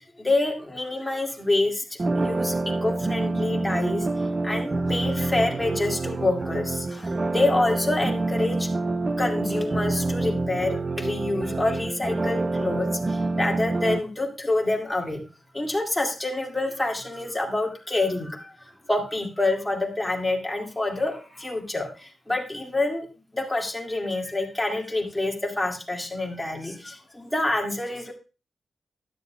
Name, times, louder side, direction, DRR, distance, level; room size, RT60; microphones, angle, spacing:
voice 1, 0.2-1.7 2.2-2.5 2.8-4.0 4.4-6.7 7.3-8.6 9.2-12.9 13.4-15.2 15.6-18.3 18.9-21.1 21.4-21.9 22.3-23.0 23.4-26.7 27.3-28.1, left 2 dB, 10° left, 1 dB, 2.2 m, -26 dB
sound 1, 2.0-14.0, right 2 dB, 35° right, 0.5 m, -27 dB
13.0 x 10.5 x 2.3 m, 0.31 s
wide cardioid pair, 105°, 0 cm